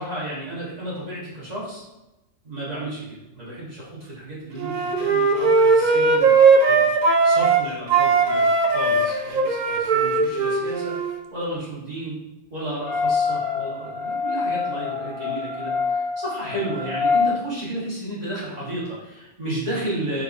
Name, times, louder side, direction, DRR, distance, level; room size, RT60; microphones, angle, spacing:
voice 1, 0.0-1.8 2.4-11.0 11.3-12.2 12.5-20.2, right 1 dB, 35° right, -9 dB, 1.6 m, -32 dB
Wind instrument woodwind instrument, 4.6-7.6 7.9-11.2, right 4 dB, 60° right, 0.4 m, -18 dB
sound 1, 12.8-17.3, left 5 dB, 55° left, 1.0 m, -25 dB
4.4 x 3.8 x 2.5 m, 0.99 s
omnidirectional pair, 1.3 m